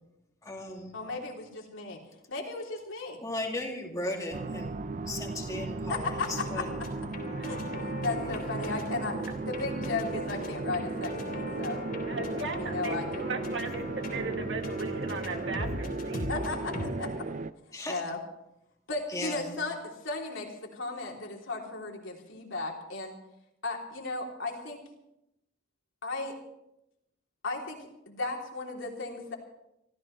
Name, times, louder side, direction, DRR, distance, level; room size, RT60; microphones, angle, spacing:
voice 1, 0.4-1.0 3.2-4.7 5.1-6.7 8.3-8.4 17.7-18.0 19.1-19.5, left 1 dB, 15° left, 0 dB, 2.5 m, -36 dB
voice 2, 0.9-2.0 2.3-3.2 5.9-6.3 6.5-6.6 7.5-9.2 9.5-11.9 12.6-13.2 16.3-17.1 17.9-18.2 18.9-23.2 23.6-24.8 26.0-26.4 27.4-27.8 28.1-29.3, left 3 dB, 80° left, -1 dB, 3.3 m, -35 dB
sound 1, 4.3-17.5, right 3 dB, 40° right, 0.5 m, -36 dB
sound 2, 6.0-16.9, left 1 dB, 45° left, 3.5 m, -40 dB
voice 3, 12.1-16.3, right 3 dB, 65° right, 4 dB, 1.9 m, -37 dB
25.5 x 15.0 x 3.3 m, 0.85 s
head